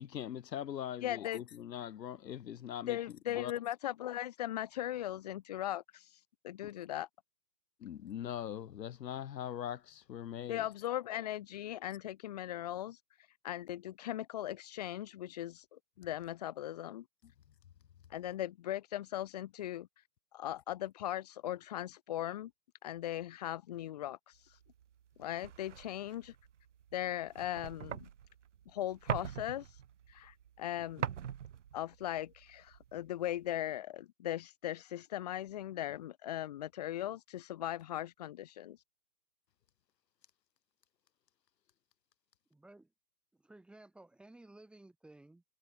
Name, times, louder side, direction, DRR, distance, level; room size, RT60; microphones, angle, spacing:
voice 1, 0.0-3.0 3.3-3.5 7.8-10.6, left 10 dB, 85° left, 0.9 m, -41 dB
voice 2, 1.0-1.4 2.9-6.0 6.4-7.1 10.5-13.0 13.4-17.0 18.1-19.9 20.3-22.5 22.8-24.2 25.2-26.3 26.9-28.1 28.7-29.7 30.1-31.3 31.7-38.8, left 12 dB, 25° left, 1.3 m, -39 dB
sound 1, 24.5-33.5, right 9 dB, 45° right, 1.3 m, -44 dB
voice 3, 42.5-42.9 43.3-45.4, right 2 dB, ahead, 4.3 m, -56 dB
hypercardioid pair, 165°, 49 cm